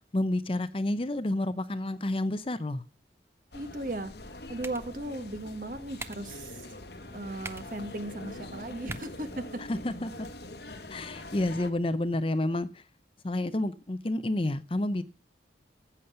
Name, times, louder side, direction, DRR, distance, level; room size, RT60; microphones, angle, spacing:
voice 1, 0.1-2.8 9.7-10.3 10.9-12.8 13.2-15.0, left 1 dB, 30° left, 0.6 m, -29 dB
sound 1, 3.5-11.7, left 1 dB, 65° left, 1.3 m, -44 dB
voice 2, 3.5-4.1 4.5-6.7 7.1-9.4, right 1 dB, 45° right, 1.4 m, -37 dB
sound 2, 4.1-10.1, right 3 dB, 15° right, 0.6 m, -48 dB
13.5 x 8.4 x 5.6 m
head